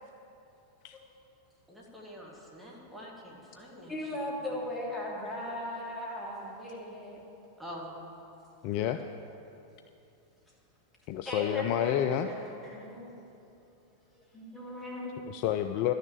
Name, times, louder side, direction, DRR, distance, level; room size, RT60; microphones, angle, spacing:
voice 1, 1.7-3.9 7.6-7.9, equal, 5° right, -3 dB, 2.3 m, -46 dB
voice 2, 3.9-7.2 11.2-12.0 12.2-13.2 14.3-15.1, left 1 dB, 15° left, -5 dB, 3.2 m, -38 dB
voice 3, 8.6-9.0 11.1-12.3 15.3-15.9, left 11 dB, 45° left, 8 dB, 0.4 m, -29 dB
12.0 x 6.5 x 8.3 m, 2.8 s
figure-of-eight pair, 90°, 0 cm